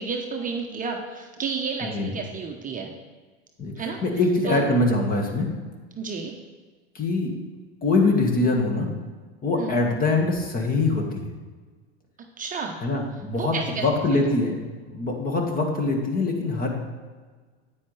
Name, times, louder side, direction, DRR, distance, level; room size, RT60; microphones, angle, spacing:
voice 1, 0.0-2.9 3.8-4.0 4.4-4.7 6.0-6.3 9.6-9.8 12.4-12.8 13.4-13.8, right 4 dB, 25° right, 2 dB, 0.9 m, -31 dB
voice 2, 1.8-2.1 3.6-5.5 6.9-7.4 7.8-8.9 9.4-11.3 12.8-16.7, left 2 dB, 25° left, 2 dB, 1.7 m, -23 dB
9.4 x 8.7 x 3.3 m, 1.4 s
hypercardioid pair, 95°, 32 cm